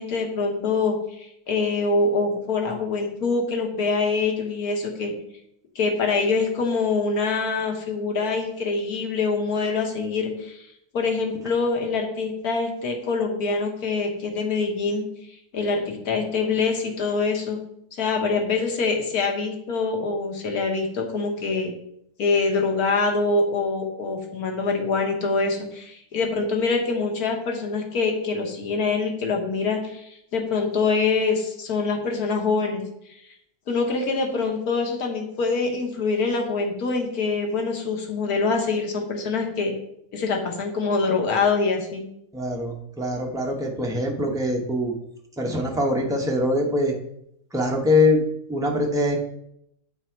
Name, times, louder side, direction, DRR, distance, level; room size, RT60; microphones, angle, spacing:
voice 1, 0.0-5.1 5.7-10.7 10.9-15.1 15.5-17.6 18.0-21.7 22.2-32.8 33.7-39.7 40.1-42.0, left 4 dB, 65° left, 1 dB, 1.6 m, -25 dB
voice 2, 42.3-44.9 45.4-46.9 47.5-48.2 48.5-49.2, left 1 dB, 5° right, 0 dB, 0.5 m, -23 dB
8.0 x 4.1 x 4.4 m, 0.76 s
omnidirectional pair, 1.7 m